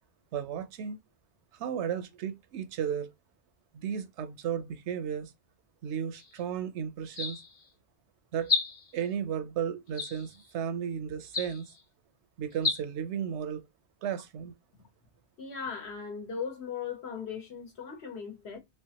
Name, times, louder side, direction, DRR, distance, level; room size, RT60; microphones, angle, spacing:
voice 1, 0.3-1.0 1.5-3.1 3.7-5.3 5.8-7.4 8.3-8.5 8.9-11.7 12.4-13.7 14.0-14.5, right 8 dB, 90° right, 0.9 m, -34 dB
sound 1, 6.1-6.4 7.1-7.7 8.4-9.0 9.9-10.5 11.3-11.8 12.5-12.8, left 5 dB, 45° left, 1.1 m, -32 dB
voice 2, 15.4-18.6, left 6 dB, 75° left, 1.3 m, -38 dB
3.3 x 3.1 x 2.8 m
omnidirectional pair, 1.1 m